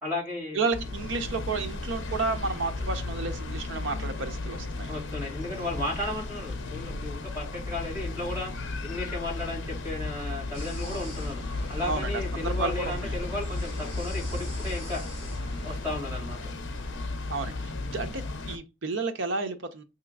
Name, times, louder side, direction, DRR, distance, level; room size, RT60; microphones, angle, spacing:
voice 1, 0.0-0.6 4.9-11.4 11.7-15.0 15.6-16.5, left 2 dB, 10° right, 2.3 m, -34 dB
voice 2, 0.5-4.9 11.8-13.2 17.3-19.8, right 3 dB, 70° right, 0.7 m, -32 dB
sound 1, 0.7-18.6, left 2 dB, 65° left, 0.6 m, -34 dB
sound 2, 10.5-15.8, equal, 25° left, 2.8 m, -40 dB
5.8 x 2.9 x 2.4 m
head